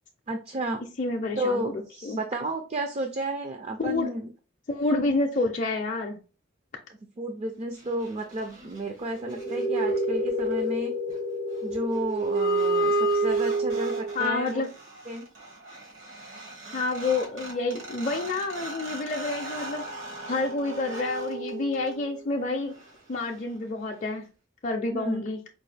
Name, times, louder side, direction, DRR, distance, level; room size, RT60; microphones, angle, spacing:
voice 1, 0.3-0.8 1.4-4.3 7.2-10.9 11.6-14.6 15.1-15.3 24.9-25.2, right 1 dB, 35° right, 0.4 m, -32 dB
voice 2, 1.0-2.2 3.8-4.1 4.7-6.2 14.2-14.7 16.7-19.8 20.3-22.7 23.1-24.2 24.6-25.4, left 3 dB, 40° left, 0.5 m, -28 dB
sound 1, 9.1-14.5 16.4-16.5 16.7-22.2, right 2 dB, 75° right, 1.6 m, -29 dB
4.6 x 2.3 x 3.3 m
head